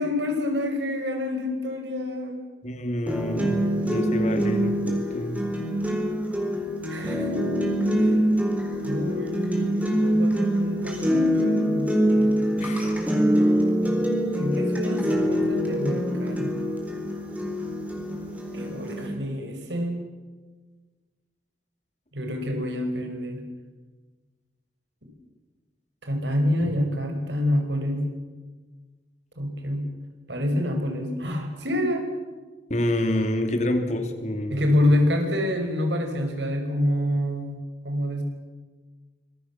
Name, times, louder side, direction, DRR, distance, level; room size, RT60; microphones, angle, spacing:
voice 1, 0.0-2.4 6.9-7.4 7.9-8.1 8.8-12.4 14.4-16.5 18.5-20.0 22.1-23.4 26.0-28.0 29.4-29.9 30.3-32.1 34.5-38.2, left 1 dB, 80° right, 5 dB, 5.5 m, -27 dB
voice 2, 2.6-5.4 12.6-12.9 26.6-26.7 32.7-34.6, left 1 dB, 40° left, 6 dB, 2.7 m, -28 dB
sound 1, 3.1-19.1, equal, 10° right, 4.1 m, -24 dB
26.0 x 21.5 x 7.3 m, 1.3 s
head